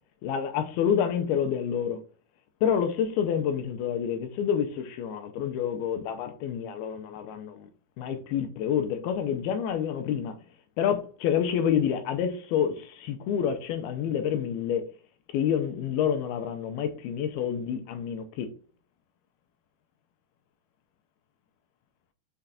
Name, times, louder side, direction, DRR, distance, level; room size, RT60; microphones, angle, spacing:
voice 1, 0.2-2.0 2.6-7.7 8.0-10.4 10.8-14.9 15.3-18.5, left 8 dB, 80° left, 2.6 m, -28 dB
6.5 x 6.1 x 2.9 m
omnidirectional pair, 4.6 m